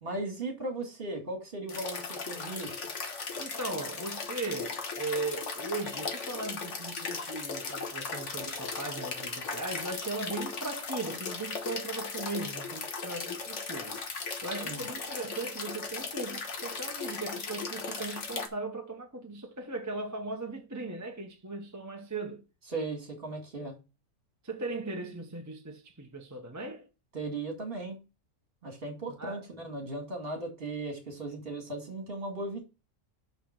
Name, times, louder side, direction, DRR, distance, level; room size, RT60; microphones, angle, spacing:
voice 1, 0.0-2.8 14.6-14.8 22.7-23.8 27.1-28.0 28.6-32.7, right 2 dB, 45° right, 2.5 m, -37 dB
sound 1, 1.7-18.5, left 4 dB, 65° left, 1.6 m, -37 dB
voice 2, 3.4-22.4 24.4-26.9 29.1-29.4, right 3 dB, 15° right, 0.9 m, -38 dB
5.9 x 5.6 x 5.8 m
omnidirectional pair, 1.4 m